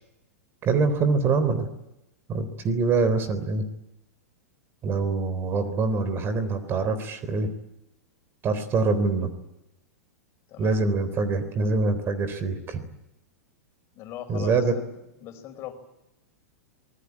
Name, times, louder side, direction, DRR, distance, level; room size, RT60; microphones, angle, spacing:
voice 1, 0.6-1.7 2.3-3.7 4.8-7.5 8.4-9.3 10.6-12.8 14.3-14.7, right 4 dB, 30° right, 12 dB, 3.7 m, -24 dB
voice 2, 10.5-10.9 13.9-14.9 15.2-15.7, left 11 dB, 35° left, 5 dB, 5.1 m, -39 dB
26.0 x 20.0 x 8.7 m, 0.89 s
figure-of-eight pair, 100°, 8 cm